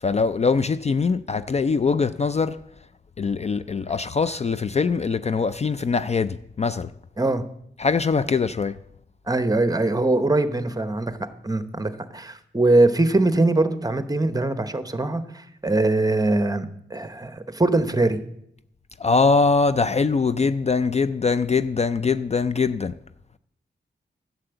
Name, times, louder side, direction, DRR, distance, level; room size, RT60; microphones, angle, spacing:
voice 1, 0.0-2.6 3.2-6.9 7.8-8.7 19.0-22.9, left 4 dB, 35° left, 0.4 m, -22 dB
voice 2, 9.3-11.1 11.4-18.2, right 2 dB, 20° right, 0.9 m, -22 dB
11.5 x 6.9 x 7.9 m
wide cardioid pair, 95°, 19 cm